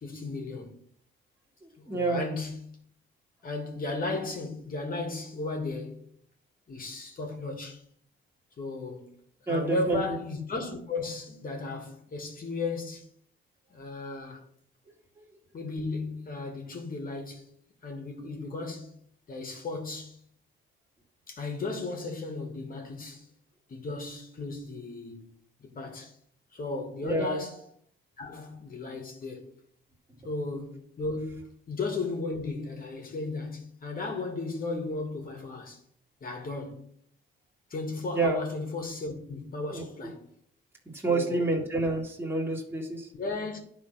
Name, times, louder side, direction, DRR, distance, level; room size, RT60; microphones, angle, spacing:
voice 1, 0.0-0.7 1.8-2.8 3.4-6.0 6.7-7.8 8.6-9.1 9.5-13.1 13.7-14.4 15.5-17.5 17.8-18.9 19.3-20.2 21.3-23.3 23.7-25.3 25.6-26.1 26.5-27.6 28.2-29.5 30.2-35.8 36.2-36.8 37.7-40.2 41.1-41.4 43.1-43.6, left 3 dB, 45° left, 2.4 m, -35 dB
voice 2, 1.6-2.2 9.5-10.2 27.0-27.4 38.1-38.4 39.7-39.8 40.9-43.1, right 2 dB, 10° right, 2.3 m, -28 dB
10.0 x 4.2 x 5.9 m
cardioid pair, 90°, 20 cm